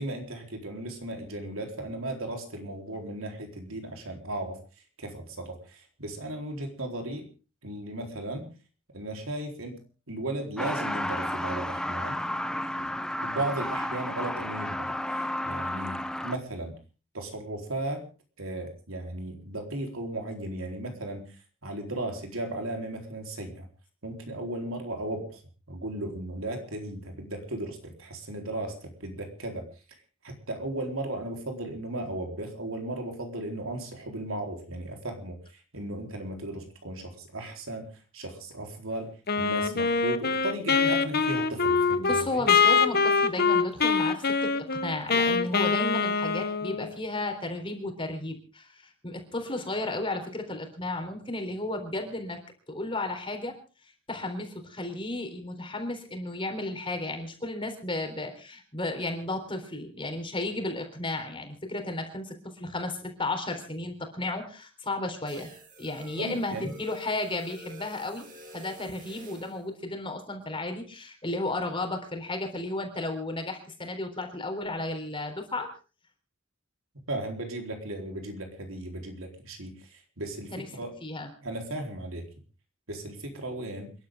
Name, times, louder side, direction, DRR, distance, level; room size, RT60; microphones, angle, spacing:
voice 1, 0.0-4.6 5.0-7.3 7.6-8.5 8.9-9.8 10.1-12.2 12.8-12.9 13.2-16.8 17.1-18.1 18.4-23.7 24.0-25.4 25.7-29.7 30.2-42.4 66.1-66.7 77.1-80.9 81.4-82.2 82.9-83.9, right 1 dB, 70° right, 3 dB, 4.2 m, -36 dB
Truck, 10.6-16.4, left 1 dB, 5° left, 0.8 m, -32 dB
Wind instrument woodwind instrument, 39.3-46.9, left 5 dB, 45° left, 1.1 m, -24 dB
voice 2, 42.0-52.4 52.7-53.6 54.1-65.5 65.8-68.3 68.5-75.7 80.5-80.7 81.0-81.3, left 2 dB, 25° left, 5 dB, 3.7 m, -33 dB
sound 1, 65.3-69.6, equal, 40° right, 7.2 m, -48 dB
28.5 x 11.5 x 3.8 m, 0.35 s
head